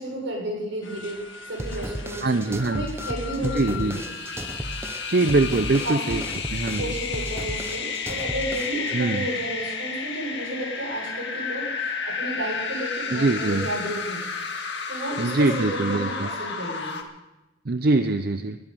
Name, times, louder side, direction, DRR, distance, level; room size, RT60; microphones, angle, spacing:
voice 1, 0.0-4.1 5.8-6.2 6.8-14.2 14.9-17.0, right 1 dB, 75° right, -1 dB, 6.7 m, -32 dB
sound 1, 0.8-6.3, left 6 dB, 80° left, 1.6 m, -40 dB
sound 2, 1.6-8.9, right 1 dB, 10° right, 0.6 m, -34 dB
voice 2, 2.2-2.9 3.4-4.0 5.1-6.2 6.5-6.8 8.9-9.3 13.1-13.7 15.2-16.3 17.7-18.6, right 2 dB, 50° right, 9 dB, 0.6 m, -23 dB
sound 3, 3.6-17.0, left 5 dB, 60° left, 2.0 m, -32 dB
21.5 x 11.5 x 5.4 m, 1.0 s
head